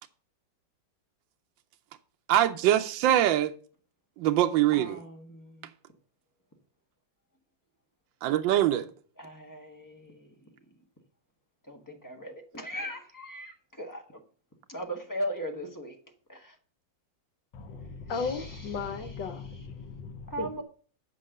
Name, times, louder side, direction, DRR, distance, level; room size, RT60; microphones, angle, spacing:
voice 1, 2.3-3.5 4.2-5.0 8.2-8.9, right 12 dB, 85° right, 1.4 m, -23 dB
voice 2, 4.7-5.7 9.2-10.3 11.7-14.2 14.7-16.0 16.3-16.5 18.1-18.9 20.3-20.6, equal, 10° left, 1.2 m, -39 dB
voice 3, 17.5-20.6, left 4 dB, 75° left, 1.6 m, -36 dB
8.5 x 5.3 x 6.5 m
omnidirectional pair, 2.0 m